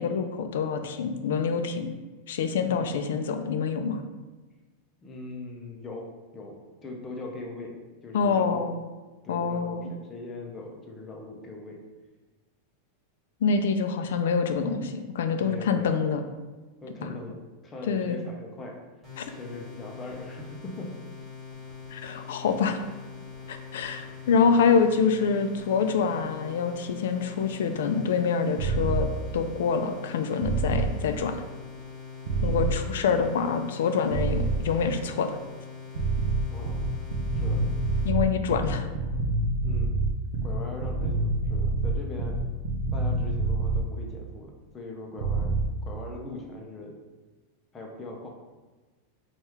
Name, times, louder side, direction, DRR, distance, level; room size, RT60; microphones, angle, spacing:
voice 1, 0.0-1.9 2.3-4.0 8.1-8.8 9.3-9.9 13.4-16.2 17.0-17.1 17.9-18.2 19.2-19.3 21.9-22.8 23.5-29.1 29.3-31.3 32.4-35.3 38.0-38.9, left 5 dB, 80° left, 7 dB, 0.4 m, -26 dB
voice 2, 2.6-2.9 5.0-6.1 6.3-6.5 6.8-7.7 8.0-8.7 9.2-11.8 15.4-15.9 16.8-17.4 17.6-18.8 19.3-21.0 24.0-24.5 32.4-32.6 36.5-36.8 37.3-37.6 39.6-40.1 40.4-42.4 42.9-47.0 47.7-48.3, left 2 dB, 15° left, 0 dB, 0.5 m, -40 dB
sound 1, 19.0-38.1, left 5 dB, 5° right, 1.4 m, -43 dB
sound 2, 28.6-29.1 30.4-30.9 32.3-32.8 34.1-34.6 36.0-43.8 45.2-45.7, right 3 dB, 80° right, 0.6 m, -27 dB
4.5 x 2.3 x 3.4 m, 1.3 s
supercardioid pair, 175°, 0 cm